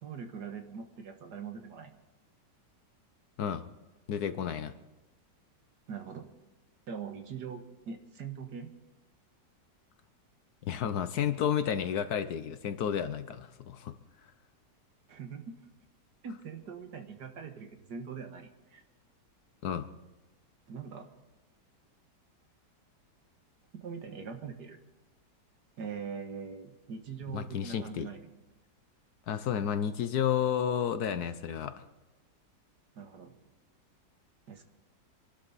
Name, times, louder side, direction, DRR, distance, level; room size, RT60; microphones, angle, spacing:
voice 1, 0.0-1.9 5.9-6.3 6.9-8.7 15.1-15.6 16.2-18.8 20.7-21.1 23.7-24.8 25.8-28.3 32.9-33.4 34.5-34.6, right 6 dB, 65° right, 6 dB, 2.0 m, -42 dB
voice 2, 4.1-4.7 10.6-14.0 19.6-19.9 27.3-28.1 29.3-31.9, left 8 dB, 65° left, 12 dB, 1.2 m, -31 dB
26.5 x 11.5 x 4.1 m, 1.1 s
omnidirectional pair, 1.9 m